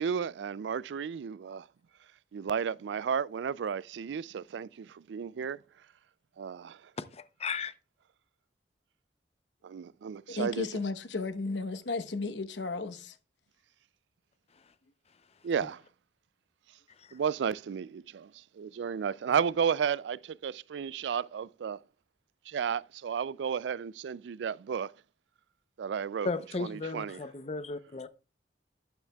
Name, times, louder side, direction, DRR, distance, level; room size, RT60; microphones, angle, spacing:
voice 1, 0.0-1.7 2.3-5.6 6.4-6.9 9.6-10.7 15.4-15.8 17.1-21.8 22.5-24.9 25.8-26.3 26.6-27.2, right 7 dB, 75° right, 0.3 m, -33 dB
voice 2, 7.0-7.7 17.0-17.2 26.2-28.1, left 4 dB, 35° left, 0.6 m, -35 dB
voice 3, 10.3-13.2, left 3 dB, 85° left, 1.0 m, -34 dB
12.0 x 9.8 x 2.3 m
head